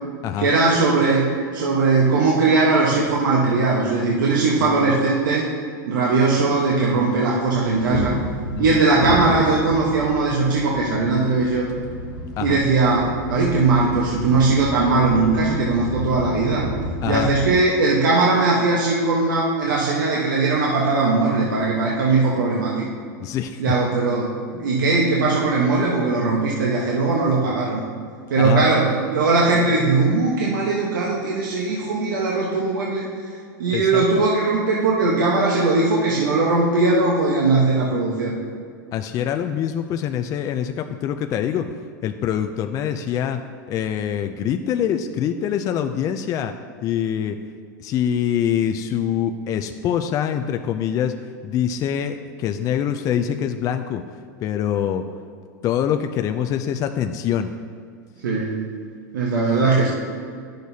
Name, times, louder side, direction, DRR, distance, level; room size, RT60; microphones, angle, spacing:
voice 1, 0.4-5.5 5.9-8.2 8.6-11.7 12.4-16.7 17.0-22.7 23.6-27.8 28.3-33.1 33.6-38.4 58.2-58.6 59.1-59.9, right 3 dB, 85° right, -4 dB, 1.0 m, -19 dB
voice 2, 4.6-4.9 8.6-8.8 12.4-12.6 17.0-17.3 23.2-23.6 28.4-28.6 33.7-34.0 38.9-41.7 42.0-43.4 43.7-46.5 46.8-47.4 47.8-51.1 51.4-54.0 54.4-55.0 55.6-57.5 59.6-59.7, left 9 dB, 35° left, 6 dB, 0.3 m, -24 dB
sound 1, 6.5-17.4, left 1 dB, 85° left, 1.1 m, -30 dB
10.0 x 6.4 x 2.7 m, 2.2 s
hypercardioid pair, 120°, 10 cm